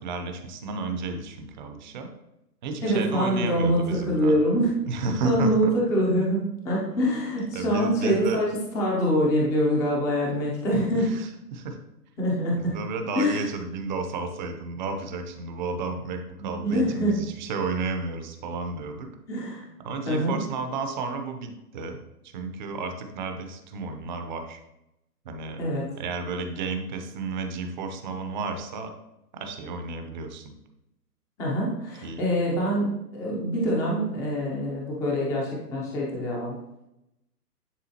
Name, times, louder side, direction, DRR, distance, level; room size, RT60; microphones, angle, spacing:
voice 1, 0.0-2.1 2.6-4.4 4.9-5.7 7.5-8.4 10.9-11.8 12.5-19.1 19.8-22.0 22.2-24.6 25.2-25.6 26.0-28.9 29.3-30.5 32.0-32.2, right 3 dB, 30° right, 6 dB, 0.7 m, -32 dB
voice 2, 2.8-4.7 5.2-8.5 8.7-11.1 12.2-12.8 13.2-13.4 16.4-17.1 19.3-19.7 20.1-20.4 25.6-25.9 31.4-36.6, equal, 5° left, -4 dB, 0.5 m, -25 dB
10.0 x 3.6 x 2.8 m, 0.88 s
hypercardioid pair, 130°, 49 cm